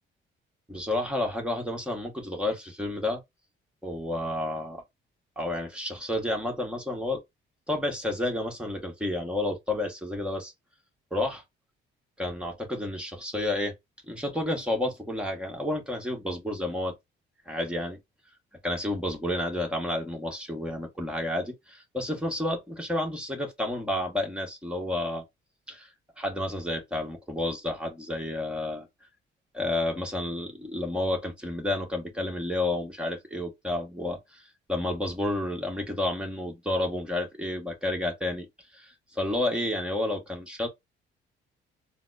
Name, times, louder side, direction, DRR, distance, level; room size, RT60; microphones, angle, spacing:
voice 1, 0.7-3.2 3.8-4.8 5.4-7.2 7.7-10.5 11.1-11.4 12.2-13.7 14.0-16.9 17.4-18.0 18.6-25.2 25.7-25.9 26.2-28.9 29.5-38.5 38.7-40.7, left 1 dB, 5° right, 1.4 m, -30 dB
4.0 x 2.1 x 2.6 m
cardioid pair, 90°, 20 cm